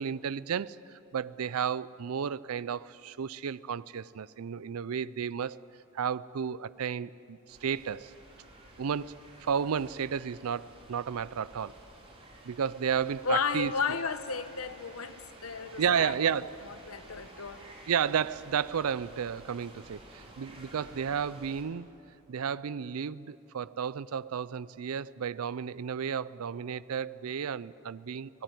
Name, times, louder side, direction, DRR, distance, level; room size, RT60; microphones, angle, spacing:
voice 1, 0.0-5.6 5.9-8.1 8.8-11.8 12.4-13.7 15.8-16.7 17.9-21.9 22.3-28.3, right 7 dB, 90° right, 0.5 m, -32 dB
sound 1, 7.5-21.6, right 1 dB, 25° right, 3.8 m, -52 dB
voice 2, 13.2-16.1 16.6-17.9, left 5 dB, 75° left, 1.1 m, -33 dB
24.0 x 19.0 x 9.2 m
head